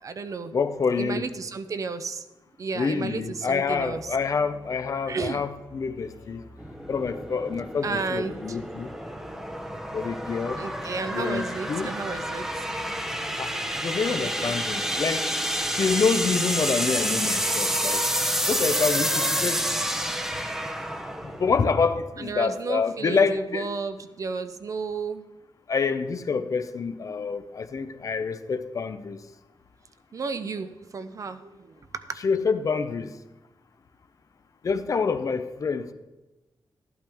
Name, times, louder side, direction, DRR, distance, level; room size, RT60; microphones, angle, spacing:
voice 1, 0.0-0.5 1.0-2.2 2.6-4.1 5.1-5.4 7.8-8.6 10.6-12.7 14.2-14.5 22.2-25.2 27.1-27.2 30.1-32.2, right 4 dB, 45° right, 10 dB, 0.6 m, -33 dB
voice 2, 0.5-1.3 2.7-6.4 6.9-8.9 9.9-10.6 11.1-11.9 13.4-15.3 15.7-18.0 18.5-19.6 21.4-23.7 25.7-29.2 32.2-33.1 34.6-35.9, left 5 dB, 45° left, 10 dB, 0.6 m, -27 dB
Musical instrument, 3.6-13.4, left 2 dB, 75° left, 1.7 m, -52 dB
sound 1, 6.6-22.0, equal, 5° right, 0.7 m, -29 dB
13.0 x 12.0 x 3.5 m, 1.1 s
wide cardioid pair, 170°, 8 cm